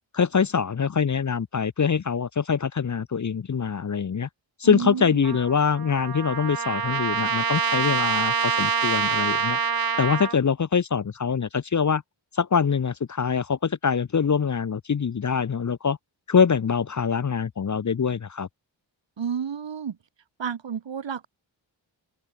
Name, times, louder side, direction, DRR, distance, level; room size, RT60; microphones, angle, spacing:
voice 1, 0.1-4.3 4.6-9.6 10.0-12.0 12.3-16.0 16.3-18.5, left 6 dB, 40° left, 0.6 m, -24 dB
voice 2, 4.6-5.1 19.2-20.0 20.4-21.3, right 7 dB, 65° right, 1.5 m, -30 dB
Trumpet, 5.2-10.4, right 6 dB, 50° right, 1.3 m, -26 dB
open air
wide cardioid pair, 110°, 47 cm